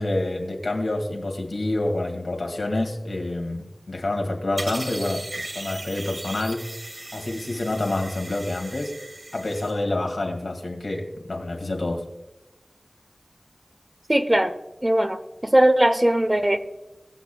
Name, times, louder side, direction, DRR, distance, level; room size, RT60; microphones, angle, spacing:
voice 1, 0.0-6.6 7.1-8.9 9.3-12.0, left 2 dB, 85° left, 2 dB, 2.1 m, -27 dB
sound 1, 4.6-9.7, right 2 dB, 65° right, 2.4 m, -37 dB
voice 2, 14.1-14.5 14.8-16.6, right 1 dB, 20° right, 9 dB, 0.8 m, -19 dB
21.5 x 7.3 x 2.3 m, 0.98 s
wide cardioid pair, 50°, 0 cm